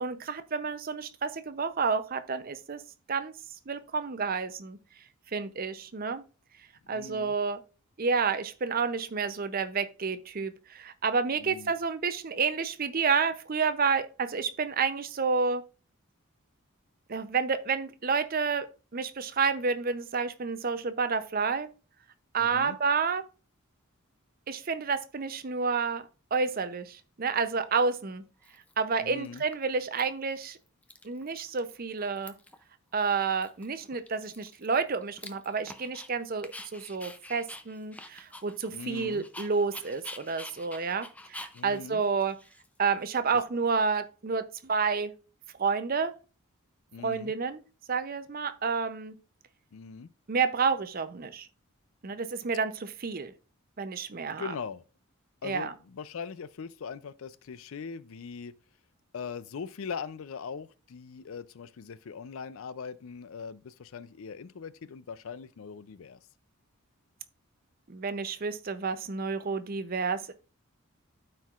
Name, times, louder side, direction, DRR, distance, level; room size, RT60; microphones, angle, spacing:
voice 1, 0.0-2.8 3.1-3.3 3.7-4.8 5.3-6.2 6.9-7.6 8.0-15.6 17.1-21.7 22.3-23.2 24.5-26.0 26.3-28.2 28.8-30.6 31.0-32.3 32.9-42.4 42.8-45.1 45.6-46.1 47.0-47.6 47.9-49.2 50.3-51.5 52.0-53.3 53.8-54.5 55.4-55.7 67.9-70.3, right 5 dB, 40° right, 0.5 m, -30 dB
voice 2, 6.9-7.3 11.4-11.7 22.4-22.8 29.0-29.4 38.7-39.2 41.5-42.0 46.9-47.3 49.7-50.1 54.4-54.8 55.4-58.5 59.1-66.2, left 6 dB, 65° left, 0.4 m, -41 dB
Dog, 27.7-27.8 28.4-28.9 29.2-30.0 30.3-30.4 30.7-31.7 32.0-32.6 33.0-33.1 33.4-36.1 36.4-43.1, left 2 dB, 5° left, 0.4 m, -47 dB
12.5 x 4.5 x 2.4 m
head